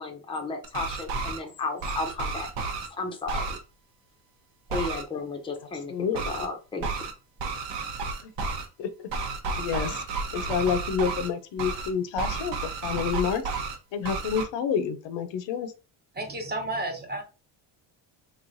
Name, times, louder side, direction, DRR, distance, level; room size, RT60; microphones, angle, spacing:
voice 1, 0.0-3.6 4.7-7.0, left 3 dB, 10° left, 0.6 m, -34 dB
sound 1, 0.6-1.4 1.8-2.9 3.3-3.6 4.7-5.0 6.1-6.5 6.8-7.1 7.4-8.7 9.1-11.3 11.6-11.9 12.2-13.8 14.0-14.4, right 4 dB, 80° right, 1.1 m, -31 dB
voice 2, 5.9-6.5 8.2-8.3 8.8-9.1 9.6-10.0 10.3-12.5 12.8-13.4 13.9-15.7, left 7 dB, 75° left, 0.7 m, -28 dB
voice 3, 16.1-17.2, right 2 dB, 20° right, 0.9 m, -31 dB
4.1 x 3.1 x 2.6 m
cardioid pair, 150°, 45 cm